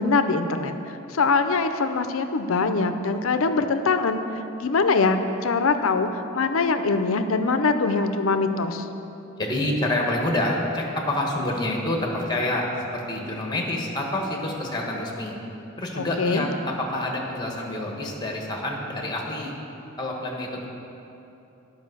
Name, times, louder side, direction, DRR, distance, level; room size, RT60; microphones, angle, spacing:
voice 1, 0.0-4.2 4.6-8.9 15.9-16.5, left 4 dB, 85° left, 9 dB, 0.6 m, -23 dB
voice 2, 9.4-15.3 15.8-19.5 20.0-20.7, left 1 dB, 20° left, 0 dB, 1.3 m, -27 dB
10.5 x 5.3 x 6.6 m, 2.9 s
head